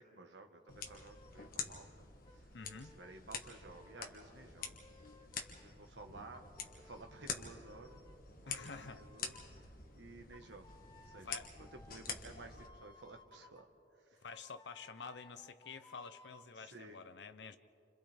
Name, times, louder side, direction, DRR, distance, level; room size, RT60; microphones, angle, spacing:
voice 1, 0.0-4.7 5.6-6.4 6.7-8.0 8.4-10.7 11.0-14.2 16.5-17.0, right 2 dB, 75° right, 4 dB, 1.4 m, -55 dB
sound 1, 0.7-12.7, left 6 dB, 50° left, 1.6 m, -47 dB
sound 2, 0.7-1.7 2.2-5.7 6.3-8.2 8.6-9.7 10.3-13.6 14.3-16.5, left 3 dB, 25° left, 1.0 m, -62 dB
voice 2, 2.5-2.9 8.5-9.0 11.2-11.5 14.2-17.6, left 5 dB, 70° left, 10 dB, 0.7 m, -49 dB
29.5 x 26.0 x 3.5 m, 2.9 s
head